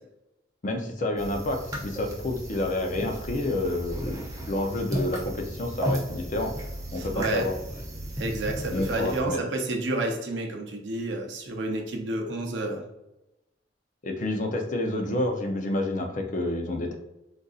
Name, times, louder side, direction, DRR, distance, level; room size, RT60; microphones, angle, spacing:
voice 1, 0.6-6.5 6.9-7.5 8.7-9.4 14.0-16.9, left 2 dB, 45° left, 3 dB, 0.5 m, -29 dB
sound 1, 1.2-9.2, right 1 dB, 20° right, 0.6 m, -35 dB
voice 2, 6.9-7.5 8.2-12.8, right 2 dB, 75° right, 2 dB, 0.6 m, -30 dB
3.9 x 2.5 x 2.4 m, 0.93 s
head